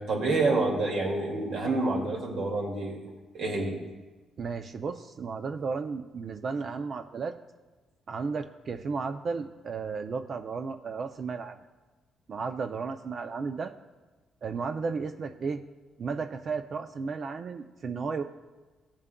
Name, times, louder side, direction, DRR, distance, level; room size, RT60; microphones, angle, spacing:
voice 1, 0.0-3.0 3.3-3.7, right 3 dB, 75° right, -1 dB, 2.1 m, -28 dB
voice 2, 4.4-7.4 8.1-11.6 12.3-13.7 14.4-15.6 16.0-18.2, right 5 dB, 50° right, 7 dB, 0.5 m, -34 dB
16.0 x 7.3 x 2.3 m, 1.2 s
cardioid pair, 90°, 0 cm